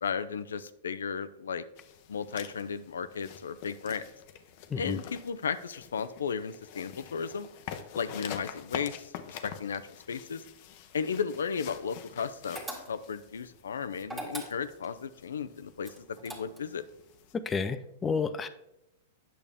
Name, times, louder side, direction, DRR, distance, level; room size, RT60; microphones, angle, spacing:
voice 1, 0.0-1.6 2.1-4.0 4.8-7.5 7.9-9.8 10.1-10.4 10.9-12.6 12.9-16.8, left 6 dB, 85° left, 13 dB, 0.5 m, -34 dB
sound 1, 1.8-17.3, left 9 dB, 50° left, 0.7 m, -47 dB
sound 2, 12.5-13.2 14.0-14.9 15.8-16.8, right 1 dB, 10° right, 1.8 m, -40 dB
voice 2, 17.3-18.5, left 5 dB, 20° left, 10 dB, 0.5 m, -31 dB
8.7 x 6.8 x 3.5 m, 0.86 s
hypercardioid pair, 125°, 0 cm